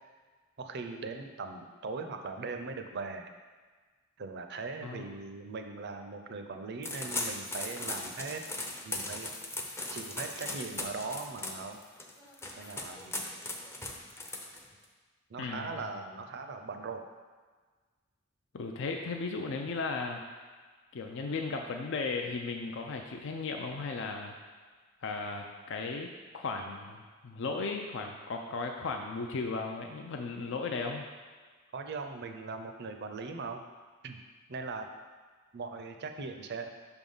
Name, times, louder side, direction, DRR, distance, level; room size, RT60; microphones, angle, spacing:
voice 1, 0.6-3.3 4.2-8.4 8.8-9.3 9.9-11.8 12.6-13.3 15.3-17.1 31.7-33.6 34.0-34.2 34.5-34.9 35.5-36.7, right 4 dB, 55° right, 6 dB, 0.5 m, -40 dB
voice 2, 4.8-5.1 15.4-15.8 18.5-20.2 20.9-24.3 25.0-31.1, left 4 dB, 65° left, 3 dB, 0.4 m, -36 dB
sound 1, 6.8-14.8, left 2 dB, 10° left, 0.5 m, -38 dB
5.8 x 3.6 x 5.4 m, 1.4 s
head